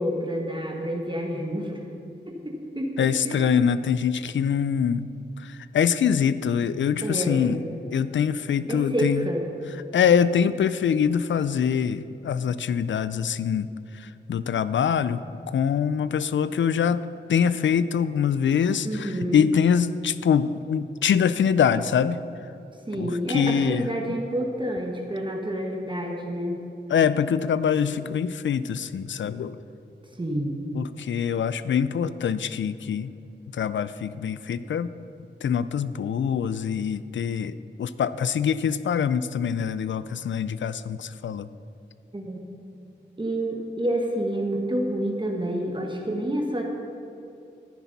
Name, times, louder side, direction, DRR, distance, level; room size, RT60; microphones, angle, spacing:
voice 1, 0.0-1.8 2.3-3.6 7.0-7.6 8.7-9.5 18.8-19.5 22.9-26.6 30.2-30.7 42.1-42.4 43.2-46.6, right 1 dB, 25° right, 0 dB, 1.4 m, -28 dB
voice 2, 3.0-5.1 5.4-7.6 7.9-9.3 9.9-13.7 13.9-22.2 23.0-23.9 26.9-29.6 30.7-33.1 33.5-34.9 35.4-41.5, left 7 dB, 80° left, 15 dB, 0.4 m, -24 dB
14.0 x 10.5 x 4.1 m, 2.7 s
wide cardioid pair, 75°, 19 cm